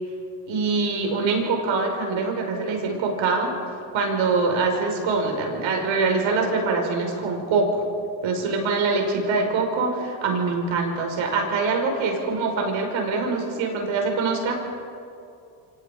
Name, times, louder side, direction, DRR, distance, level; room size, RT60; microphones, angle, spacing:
voice 1, 0.5-3.5 3.9-7.8 8.2-14.6, right 4 dB, 75° right, 2 dB, 5.7 m, -24 dB
28.5 x 25.0 x 5.2 m, 2.5 s
cardioid pair, 85°, 48 cm